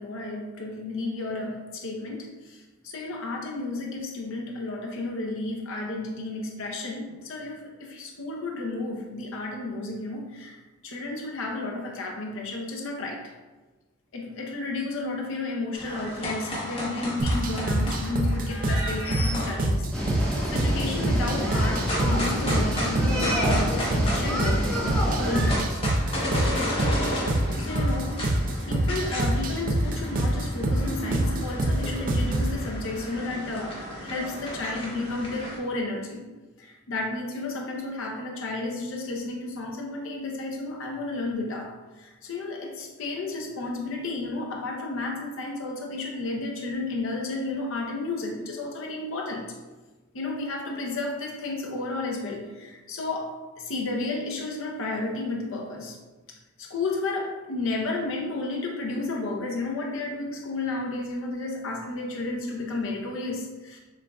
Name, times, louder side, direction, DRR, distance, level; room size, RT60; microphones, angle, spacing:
voice 1, 0.0-10.6 10.8-13.2 14.1-19.9 20.2-25.8 27.6-28.2 28.7-36.3 36.6-49.5 50.1-56.0 56.6-63.8, left 2 dB, 70° left, 0 dB, 0.6 m, -32 dB
sound 1, 15.7-19.7 21.7-24.8 25.0-35.6, equal, 25° left, 0.9 m, -34 dB
sound 2, 17.2-32.6, right 1 dB, 40° right, 0.5 m, -26 dB
sound 3, 19.9-25.6, equal, 5° left, 1.0 m, -29 dB
7.0 x 2.5 x 2.3 m, 1.2 s
head